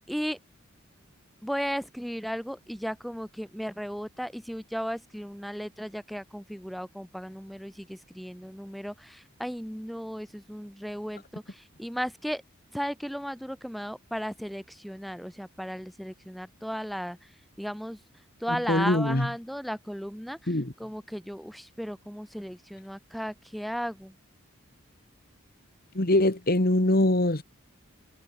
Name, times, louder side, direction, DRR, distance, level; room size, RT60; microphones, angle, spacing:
voice 1, 0.1-0.4 1.4-12.4 12.7-17.3 17.6-18.0 18.4-20.5 20.8-24.2, equal, ahead, 6.9 m, -35 dB
voice 2, 18.5-19.3 20.5-20.7 25.9-27.4, left 1 dB, 45° left, 1.9 m, -23 dB
head